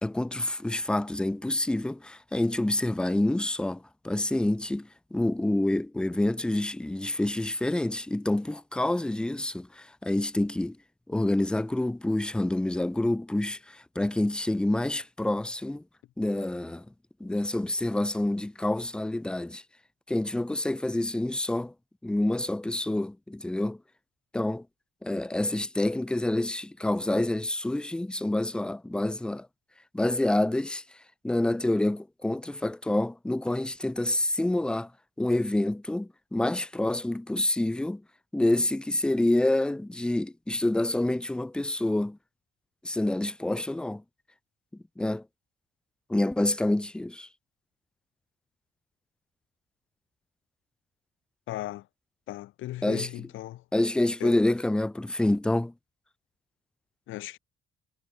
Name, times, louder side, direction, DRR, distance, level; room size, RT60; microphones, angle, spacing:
voice 1, 0.0-10.8 11.1-15.8 16.2-16.9 17.2-19.6 20.1-21.7 22.0-23.8 24.3-24.7 25.0-29.5 29.9-30.8 31.2-34.9 35.2-38.0 38.3-42.2 42.8-44.0 45.0-45.2 46.1-47.3 52.8-53.3 53.7-55.7, left 1 dB, 5° left, 0.4 m, -27 dB
voice 2, 51.5-51.9 52.3-53.6 54.2-54.4 57.1-57.4, left 15 dB, 80° left, 0.7 m, -37 dB
cardioid pair, 90°, 20 cm